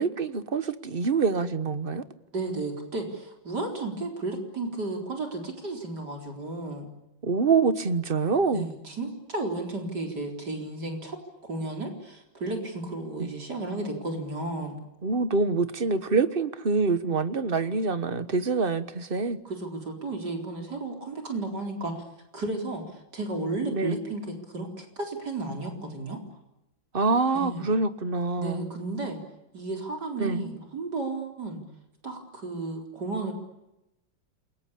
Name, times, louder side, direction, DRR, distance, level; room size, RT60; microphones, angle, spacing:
voice 1, 0.0-2.0 7.2-8.7 13.2-13.3 15.0-19.4 23.7-24.0 26.9-28.6 30.2-30.4, right 4 dB, 30° right, 12 dB, 1.3 m, -25 dB
voice 2, 2.3-6.9 8.5-11.2 11.4-14.8 19.4-22.0 22.3-26.2 27.3-27.7 28.4-29.2 29.5-31.6 32.0-33.3, right 2 dB, 55° right, 3 dB, 4.7 m, -33 dB
29.0 x 23.5 x 8.6 m, 0.92 s
omnidirectional pair, 2.1 m